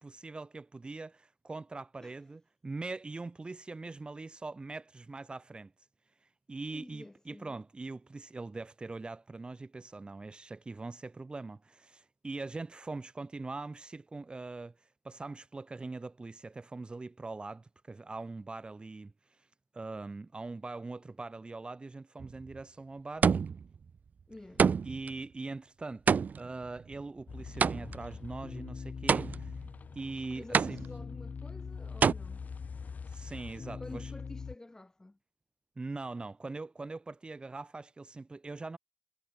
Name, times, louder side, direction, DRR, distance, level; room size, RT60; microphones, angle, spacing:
voice 1, 0.0-5.9 6.2-19.5 19.7-23.3 24.8-29.6 29.9-30.8 33.1-34.1 35.8-38.8, right 3 dB, 35° right, 2.6 m, -42 dB
voice 2, 6.7-7.6 24.3-24.7 30.4-32.4 33.8-35.2, left 2 dB, 20° left, 4.0 m, -49 dB
sound 1, 22.2-22.6 23.2-23.8 24.6-25.1 26.1-28.1 29.1-29.7 30.5-31.2 32.0-32.1, right 6 dB, 70° right, 0.4 m, -27 dB
sound 2, 27.3-34.6, left 5 dB, 65° left, 2.4 m, -42 dB
wide cardioid pair, 105°, 3 cm